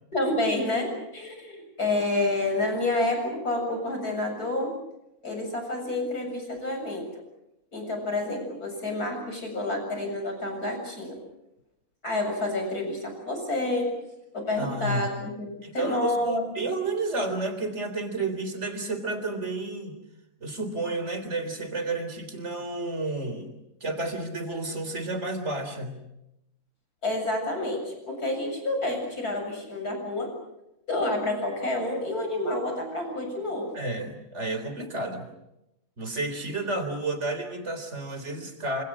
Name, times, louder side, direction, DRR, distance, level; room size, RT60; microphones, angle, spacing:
voice 1, 0.1-4.7 5.2-7.1 7.7-11.2 12.0-13.9 14.3-16.4 27.0-30.3 30.9-33.7, left 2 dB, 90° left, 4 dB, 8.0 m, -29 dB
voice 2, 14.6-15.1 15.6-19.9 20.4-23.5 23.8-26.0 33.7-35.3 36.0-38.8, right 2 dB, 50° right, 9 dB, 4.0 m, -31 dB
27.5 x 26.5 x 6.3 m, 0.86 s
omnidirectional pair, 1.6 m